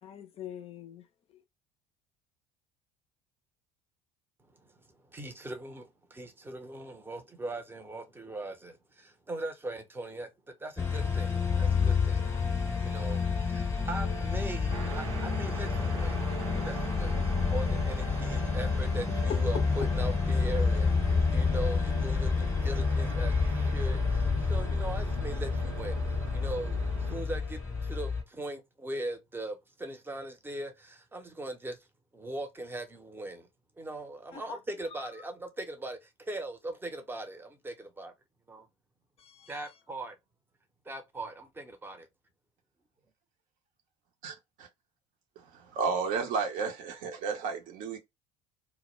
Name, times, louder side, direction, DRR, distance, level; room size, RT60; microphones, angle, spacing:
voice 1, 0.0-1.0 1.3-1.4 19.3-19.6 34.3-34.6 34.9-35.1 39.2-39.6, left 8 dB, 35° left, 0.5 m, -41 dB
voice 2, 4.5-12.3 12.8-31.9 32.1-33.5 33.8-38.1 38.5-38.7 39.5-40.2 40.8-42.1, right 1 dB, 15° right, 0.7 m, -40 dB
sound 1, 10.8-28.2, left 5 dB, 15° left, 0.9 m, -29 dB
sound 2, 14.7-27.2, right 5 dB, 85° right, 0.4 m, -42 dB
voice 3, 45.7-48.0, right 5 dB, 55° right, 0.7 m, -32 dB
2.1 x 2.1 x 3.0 m
hypercardioid pair, 65°, 16 cm